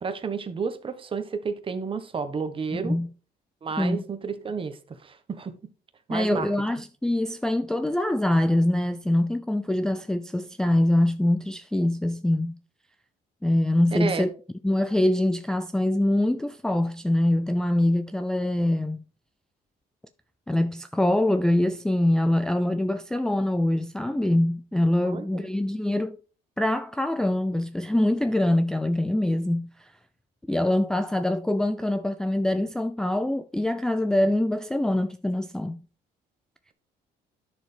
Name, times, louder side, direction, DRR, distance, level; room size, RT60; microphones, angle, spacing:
voice 1, 0.0-3.0 3.6-5.5 6.1-6.5 13.9-14.3 25.0-25.5, right 5 dB, 30° right, 1.2 m, -31 dB
voice 2, 2.7-3.1 3.8-4.0 6.1-12.6 13.4-14.3 14.6-19.0 20.5-26.2 26.6-29.9 30.5-35.8, left 1 dB, 5° left, 0.4 m, -24 dB
10.5 x 6.7 x 3.4 m
cardioid pair, 110°, 17 cm